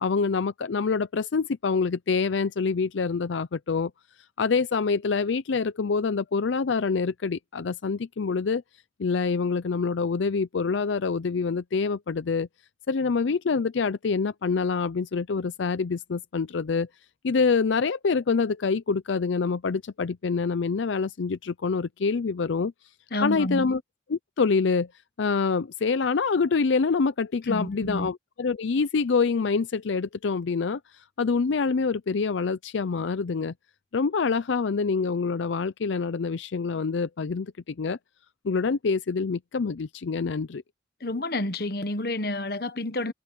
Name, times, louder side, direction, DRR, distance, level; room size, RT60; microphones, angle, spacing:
voice 1, 0.0-3.9 4.4-8.6 9.0-12.5 12.9-16.9 17.2-22.7 23.2-23.8 24.1-24.9 25.2-33.5 33.9-38.0 38.4-40.6, left 4 dB, 80° left, 0.5 m, -26 dB
voice 2, 23.1-23.7 27.5-28.1 41.0-43.1, left 1 dB, 55° left, 1.2 m, -29 dB
head